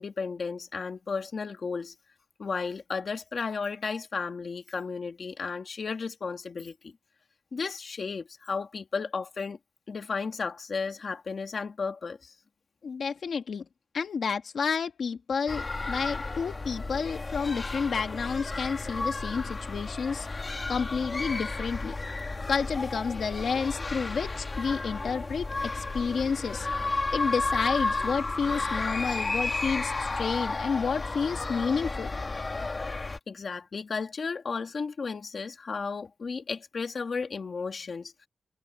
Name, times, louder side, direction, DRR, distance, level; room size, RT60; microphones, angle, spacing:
voice 1, 0.0-1.9 2.4-6.9 7.5-9.6 9.9-12.3 33.3-38.1, left 5 dB, 55° left, 2.1 m, -34 dB
voice 2, 12.8-13.6 13.9-20.3 20.7-21.9 22.5-26.7 27.1-32.1, left 5 dB, 80° left, 2.0 m, -30 dB
sound 1, 15.5-33.2, left 3 dB, 30° left, 1.7 m, -32 dB
wide cardioid pair, 165°, 0 cm